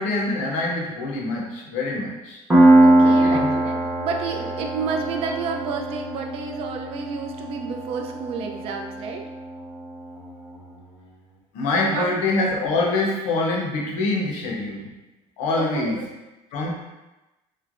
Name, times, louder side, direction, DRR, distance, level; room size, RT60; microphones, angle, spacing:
voice 1, 0.0-2.4 3.0-3.5 11.5-14.9 15.4-16.1 16.5-16.7, left 2 dB, 70° left, -1 dB, 0.6 m, -25 dB
Piano, 2.5-9.9, right 1 dB, 10° right, 0.7 m, -21 dB
voice 2, 2.8-9.3 11.8-12.1 15.5-16.1, right 5 dB, 50° right, 3 dB, 0.4 m, -30 dB
3.1 x 2.0 x 2.4 m, 1.0 s
cardioid pair, 135°, 12 cm